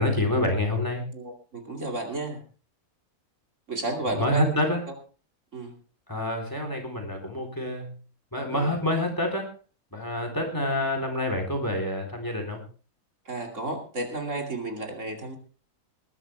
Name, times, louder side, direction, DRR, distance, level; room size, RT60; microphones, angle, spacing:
voice 1, 0.0-1.1 4.1-4.9 6.1-7.9 8.3-9.5 9.9-12.6, left 1 dB, 15° left, 3 dB, 3.7 m, -27 dB
voice 2, 1.1-2.4 3.7-4.4 5.5-5.7 8.5-8.7 13.3-15.4, right 2 dB, 60° right, 2 dB, 3.0 m, -32 dB
21.0 x 11.5 x 3.4 m, 0.36 s
omnidirectional pair, 1.5 m